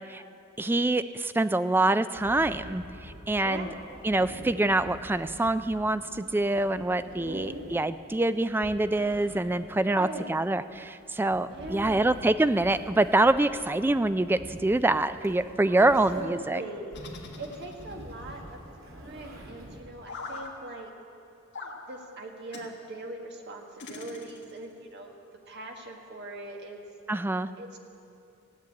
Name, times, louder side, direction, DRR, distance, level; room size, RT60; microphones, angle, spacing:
voice 1, 0.6-3.7 4.0-16.6 27.1-27.5, right 2 dB, 10° right, 12 dB, 0.3 m, -25 dB
sound 1, 2.1-16.5 16.8-19.8, equal, 75° right, 2.7 m, -47 dB
voice 2, 3.4-3.7 7.1-7.7 9.8-10.3 11.5-12.1 15.7-17.0 17.4-18.6 18.9-20.9 21.9-25.2 25.5-26.8 27.6-27.8, right 1 dB, 55° right, 2 dB, 1.7 m, -41 dB
sound 2, 16.9-18.1 20.1-20.5 21.5-21.8 22.5-22.7 23.8-24.7, left 3 dB, 55° left, 1.6 m, -41 dB
16.0 x 9.2 x 8.5 m, 2.6 s
head